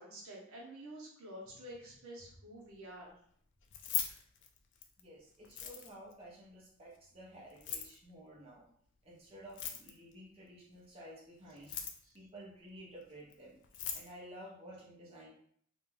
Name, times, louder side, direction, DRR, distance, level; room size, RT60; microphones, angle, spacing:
voice 1, 0.0-3.1 3.9-4.2 11.7-11.8 12.0-12.1, right 1 dB, 75° right, -3 dB, 0.8 m, -50 dB
Keys jangling, 3.6-5.0 5.4-6.1 7.5-8.0 9.4-10.1 11.5-12.2 13.3-13.4 13.6-14.1, left 8 dB, 55° left, 0.3 m, -39 dB
voice 2, 5.0-8.7 9.0-11.7 12.1-13.6 13.9-15.3, right 1 dB, 30° right, -5 dB, 0.6 m, -53 dB
2.5 x 2.2 x 3.1 m, 0.63 s
head